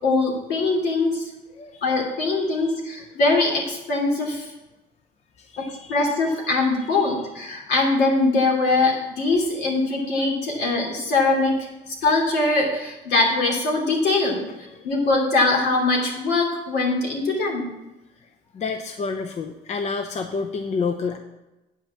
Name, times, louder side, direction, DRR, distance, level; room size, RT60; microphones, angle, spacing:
voice 1, 0.0-1.3 1.8-4.5 5.6-14.4 14.8-17.7, left 3 dB, 75° left, 0 dB, 3.0 m, -22 dB
voice 2, 1.6-1.9 2.3-2.6 5.4-6.0 6.8-6.9 14.7-14.9 18.5-21.2, left 4 dB, 40° left, 5 dB, 0.7 m, -29 dB
8.8 x 5.8 x 7.2 m, 1.0 s
cardioid pair, 110°, 17 cm